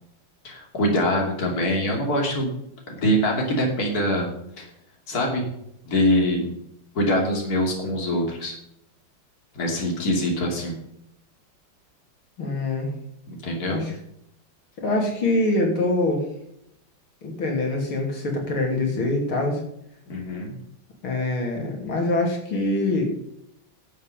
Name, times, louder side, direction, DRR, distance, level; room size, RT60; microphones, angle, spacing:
voice 1, 0.4-2.5 2.9-4.3 4.6-4.7 5.1-5.5 5.8-6.5 6.9-8.6 9.5-10.8 13.3-13.8 20.1-20.5, equal, 50° left, 0 dB, 3.3 m, -24 dB
voice 2, 12.4-12.9 13.7-13.9 14.8-16.2 17.2-19.6 21.0-23.1, left 2 dB, 90° left, 1 dB, 3.7 m, -24 dB
11.5 x 7.7 x 5.2 m, 0.77 s
omnidirectional pair, 2.2 m